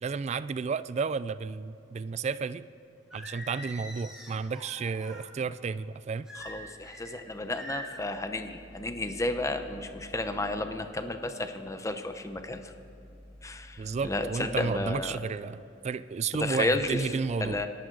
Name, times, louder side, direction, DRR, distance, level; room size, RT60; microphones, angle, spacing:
voice 1, 0.0-2.7 3.1-6.3 13.8-17.6, right 5 dB, 35° right, 15 dB, 0.3 m, -32 dB
Singing, 3.1-5.3 6.3-7.1 7.6-8.1, right 1 dB, 5° right, 2.8 m, -43 dB
voice 2, 6.3-12.7 13.4-15.2 16.4-17.7, left 2 dB, 15° left, 8 dB, 0.8 m, -32 dB
27.5 x 11.0 x 3.9 m, 2.8 s
head